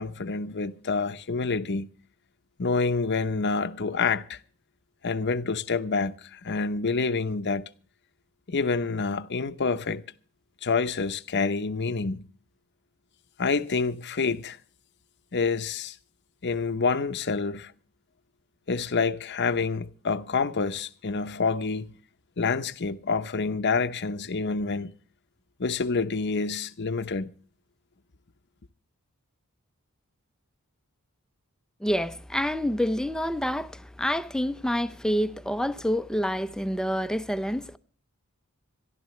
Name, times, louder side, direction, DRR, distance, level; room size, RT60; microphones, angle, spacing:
voice 1, 0.0-1.9 2.6-4.4 5.0-7.7 8.5-10.0 10.6-12.2 13.4-14.6 15.3-16.0 16.4-17.7 18.7-21.9 22.4-24.9 25.6-27.3, left 4 dB, 50° left, 0.8 m, -27 dB
voice 2, 31.8-37.8, equal, 5° left, 0.6 m, -27 dB
26.0 x 11.5 x 3.2 m
head